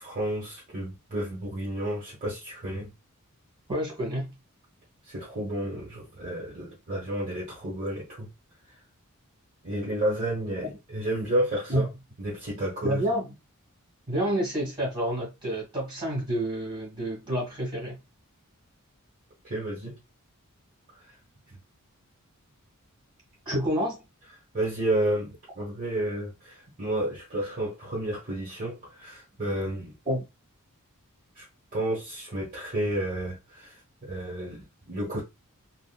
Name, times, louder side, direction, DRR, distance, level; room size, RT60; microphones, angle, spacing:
voice 1, 0.0-2.9 5.0-8.3 9.6-11.9 12.2-13.0 19.4-20.0 21.1-21.2 21.5-21.6 24.5-29.9 31.3-31.4 31.7-35.2, right 1 dB, 40° right, 0.9 m, -31 dB
voice 2, 3.7-4.3 11.7-11.8 12.8-13.3 14.1-18.0 23.4-24.0 30.0-30.2, equal, 20° right, 1.7 m, -28 dB
3.6 x 2.1 x 2.2 m
head